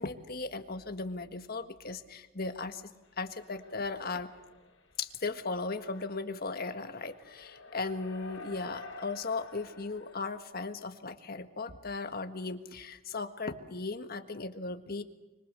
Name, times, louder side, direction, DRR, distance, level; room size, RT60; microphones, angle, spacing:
voice 1, 0.0-2.8 3.2-4.3 5.0-15.0, left 3 dB, 45° left, 7 dB, 1.6 m, -37 dB
sound 1, 3.3-4.8 5.3-10.4, left 2 dB, 70° left, 5.7 m, -50 dB
25.5 x 25.0 x 6.8 m, 1.1 s
head